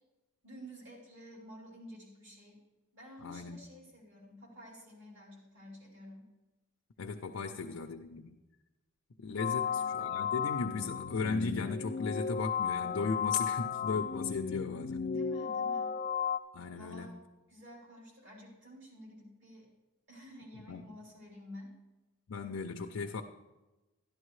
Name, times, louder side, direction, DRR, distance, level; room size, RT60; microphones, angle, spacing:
voice 1, 0.4-2.6 2.9-6.2 7.4-7.6 9.5-10.0 15.0-16.0 16.7-17.2 17.5-19.7 20.1-21.7, equal, 60° right, -3 dB, 3.3 m, -51 dB
voice 2, 3.2-3.6 7.0-8.3 9.2-15.0 16.5-17.2 20.7-20.9 22.3-23.2, left 4 dB, 90° left, 3 dB, 0.5 m, -36 dB
sound 1, 9.4-16.4, left 7 dB, 35° left, 0.3 m, -34 dB
12.0 x 11.5 x 3.2 m, 1.1 s
head